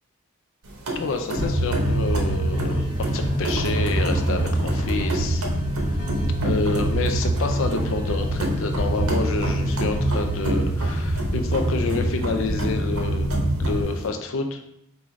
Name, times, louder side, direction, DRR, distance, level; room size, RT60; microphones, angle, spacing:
sound 1, 0.6-14.1, right 1 dB, 75° right, 0.8 m, -32 dB
voice 1, 0.9-5.4 5.9-6.0 6.4-14.7, left 3 dB, 60° left, 6 dB, 0.5 m, -28 dB
sound 2, 1.3-13.8, right 1 dB, 5° right, 1.0 m, -25 dB
5.3 x 2.4 x 3.1 m, 0.77 s
head